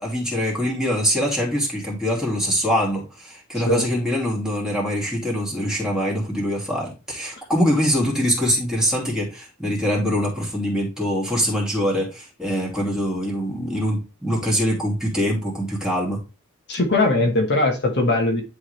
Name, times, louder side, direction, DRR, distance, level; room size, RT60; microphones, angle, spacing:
voice 1, 0.0-16.2, equal, 5° right, 2.7 m, -23 dB
voice 2, 3.5-3.9 7.4-7.5 16.7-18.4, left 2 dB, 55° left, 1.3 m, -20 dB
10.5 x 3.7 x 3.2 m
head